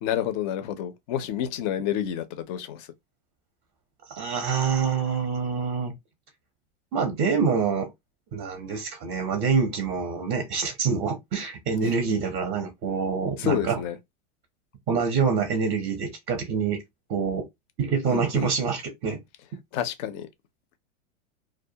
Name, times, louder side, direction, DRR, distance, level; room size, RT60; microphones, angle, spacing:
voice 1, 0.0-2.9 13.4-14.0 18.1-18.5 19.7-20.3, left 10 dB, 40° left, 0.4 m, -29 dB
voice 2, 4.1-5.9 6.9-7.9 8.3-13.8 14.9-16.8 17.1-17.4 17.8-19.2, right 5 dB, 25° right, 0.5 m, -26 dB
2.2 x 2.1 x 2.7 m
hypercardioid pair, 130°, 39 cm